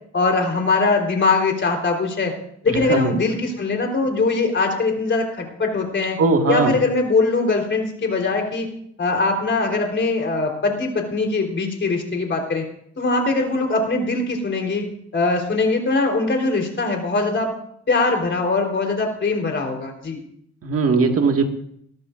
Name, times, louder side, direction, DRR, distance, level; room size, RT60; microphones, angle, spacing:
voice 1, 0.1-2.3 2.6-6.2 6.5-8.7 9.0-12.6 13.0-14.8 15.1-17.5 17.9-20.2, left 3 dB, 40° left, 2 dB, 4.0 m, -21 dB
voice 2, 2.7-3.1 6.2-6.8 20.6-21.4, right 4 dB, 50° right, 4 dB, 2.0 m, -19 dB
20.5 x 13.0 x 2.6 m, 0.69 s
cardioid pair, 90°, 30 cm